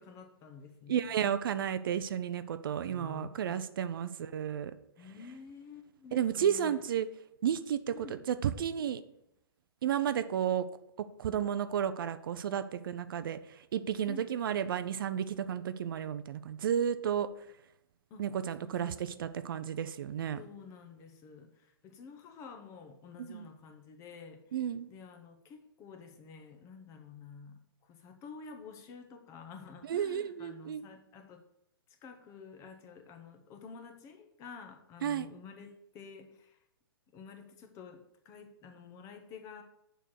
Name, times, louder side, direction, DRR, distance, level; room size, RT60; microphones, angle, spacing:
voice 1, 0.0-1.1 2.8-3.6 5.0-6.8 7.9-8.2 14.1-14.3 18.1-18.2 18.6-19.3 20.4-24.4 24.9-31.4 32.0-36.6 37.1-39.6, left 5 dB, 25° left, 6 dB, 0.9 m, -50 dB
voice 2, 0.9-4.7 6.1-7.1 7.4-9.0 9.8-10.7 11.0-17.3 18.2-20.4 23.2-23.5 24.5-24.9 29.9-30.9 35.0-35.3, right 9 dB, 60° right, 12 dB, 0.5 m, -32 dB
6.9 x 4.4 x 6.4 m, 0.78 s
hypercardioid pair, 145°, 13 cm